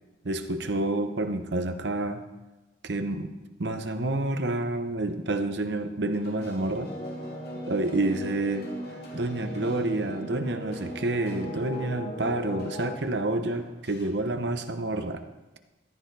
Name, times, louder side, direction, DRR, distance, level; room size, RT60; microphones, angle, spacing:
voice 1, 0.2-2.2 2.8-3.3 3.6-6.9 7.7-8.7 9.1-15.2, right 2 dB, 60° right, 8 dB, 0.9 m, -29 dB
sound 1, 6.1-14.1, left 1 dB, 55° left, 2.4 m, -48 dB
sound 2, 6.8-13.0, left 1 dB, 30° left, 0.9 m, -38 dB
14.5 x 10.5 x 4.1 m, 1.1 s
head